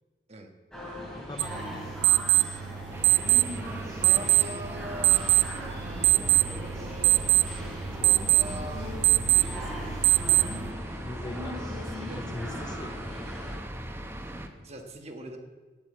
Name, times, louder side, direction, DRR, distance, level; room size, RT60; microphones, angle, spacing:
sound 1, 0.7-13.6, left 1 dB, 5° left, 3.1 m, -40 dB
voice 1, 1.1-1.9 7.9-8.4 11.0-13.1, left 2 dB, 25° left, 8 dB, 0.4 m, -42 dB
sound 2, 1.4-10.7, right 16 dB, 75° right, 0.4 m, -24 dB
sound 3, 2.9-14.5, equal, 15° right, 0.8 m, -39 dB
voice 2, 4.0-7.4 8.2-10.1 11.8-13.0 14.6-15.4, right 1 dB, 35° right, 3 dB, 1.3 m, -43 dB
8.8 x 8.1 x 8.3 m, 1.3 s
head